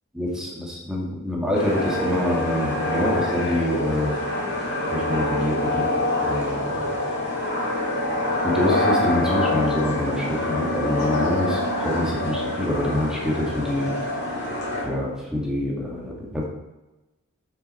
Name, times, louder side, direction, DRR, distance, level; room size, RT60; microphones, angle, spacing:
voice 1, 0.1-4.1 4.9-6.9 8.4-13.9 14.8-16.4, left 1 dB, 5° right, -3 dB, 2.0 m, -26 dB
sound 1, 1.5-14.8, left 1 dB, 50° left, 3.2 m, -25 dB
8.8 x 6.6 x 4.4 m, 1.0 s
head